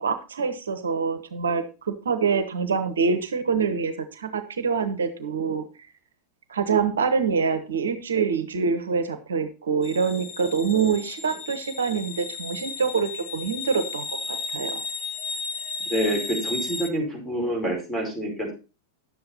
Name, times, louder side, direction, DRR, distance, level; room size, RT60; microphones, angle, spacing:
voice 1, 0.0-5.6 6.5-14.8, right 5 dB, 65° right, 10 dB, 0.9 m, -25 dB
sound 1, 9.8-16.9, left 4 dB, 30° left, 1.4 m, -34 dB
voice 2, 15.9-18.5, equal, 10° left, 0 dB, 4.8 m, -27 dB
10.5 x 7.8 x 4.1 m, 0.31 s
figure-of-eight pair, 90°, 0 cm